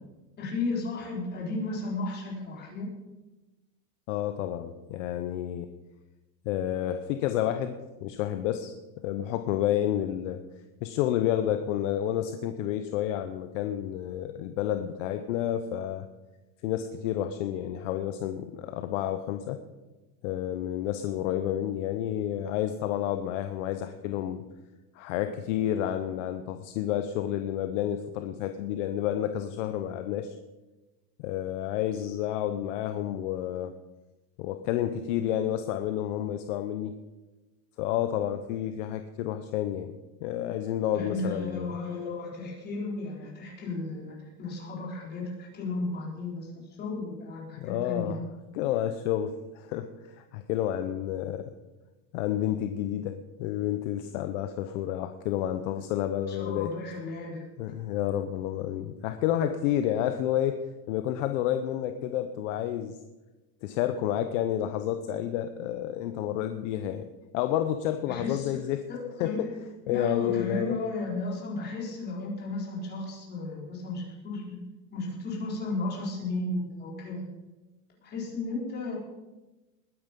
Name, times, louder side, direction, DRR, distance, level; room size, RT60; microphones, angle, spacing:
voice 1, 0.4-2.9 40.9-46.5 46.8-48.2 56.3-57.4 68.1-68.6 68.9-69.4 69.9-74.6 74.9-77.2 78.0-79.0, left 3 dB, 20° left, -3 dB, 4.0 m, -34 dB
voice 2, 4.1-5.7 6.4-8.7 9.0-10.4 10.8-16.0 16.6-19.6 20.2-24.4 24.9-30.4 31.2-33.7 34.4-36.9 37.8-39.9 40.2-41.7 47.6-48.2 48.5-51.5 52.1-56.7 57.6-60.6 60.9-63.0 63.6-67.1 67.3-68.8 69.2-69.5 69.9-70.7, left 11 dB, 50° left, 9 dB, 0.9 m, -30 dB
20.5 x 9.4 x 5.3 m, 1.1 s
supercardioid pair, 170°, 48 cm